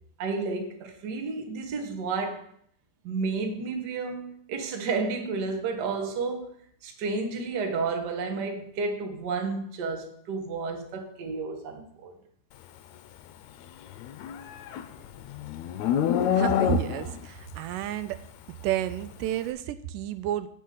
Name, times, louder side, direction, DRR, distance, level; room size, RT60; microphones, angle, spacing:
voice 1, 0.2-2.4 3.0-6.5 6.8-12.1, right 4 dB, 55° right, 1.1 m, -31 dB
Livestock farm animals working animals, 14.0-17.2, left 8 dB, 75° left, 1.8 m, -26 dB
voice 2, 16.3-18.2 18.6-20.5, right 12 dB, 85° right, 2.1 m, -31 dB
16.0 x 5.4 x 3.9 m
omnidirectional pair, 3.7 m